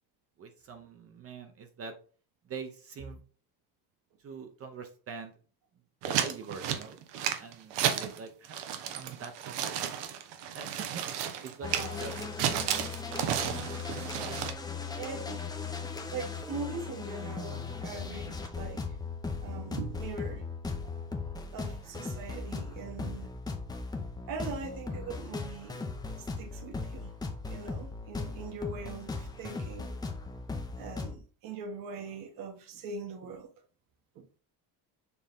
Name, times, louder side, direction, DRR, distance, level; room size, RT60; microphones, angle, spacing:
voice 1, 0.4-2.0 2.4-3.2 4.2-5.3 6.1-7.0 7.4-10.0 10.5-11.1 11.4-12.2 12.4-13.0, right 5 dB, 35° right, 0.8 m, -44 dB
sound 1, 6.0-8.2 8.4-14.5, right 9 dB, 80° right, 1.2 m, -33 dB
voice 2, 7.8-8.2 11.6-12.0 14.1-14.5 15.0-15.5 16.1-18.8 19.4-20.5 20.8-21.1 21.5-23.3 24.3-25.8 26.1-27.1 27.5-30.0 30.3-33.5 34.1-34.3, right 4 dB, 50° right, 1.4 m, -41 dB
sound 2, 11.6-31.1, left 4 dB, 10° left, 0.7 m, -38 dB
6.9 x 3.8 x 3.6 m
cardioid pair, 175°, 41 cm